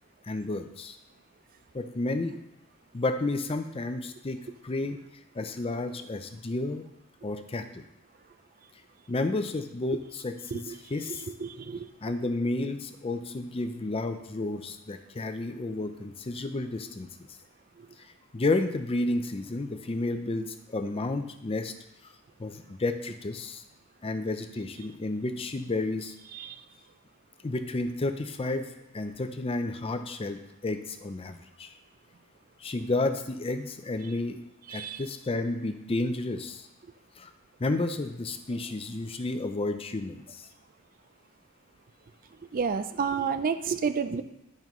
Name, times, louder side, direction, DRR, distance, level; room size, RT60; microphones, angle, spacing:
voice 1, 0.2-1.0 1.7-2.4 2.9-4.4 4.6-5.0 5.3-6.8 7.2-7.8 9.1-11.3 12.0-17.1 18.3-21.7 22.4-23.6 24.0-26.2 27.4-28.7 28.9-31.7 32.6-34.4 34.7-36.6 37.2-37.3 37.6-40.5, left 2 dB, 25° left, 8 dB, 0.5 m, -31 dB
voice 2, 11.1-11.9 26.3-26.5 34.7-35.0 42.5-44.2, right 6 dB, 40° right, 10 dB, 0.4 m, -30 dB
10.5 x 5.3 x 3.1 m, 0.92 s
head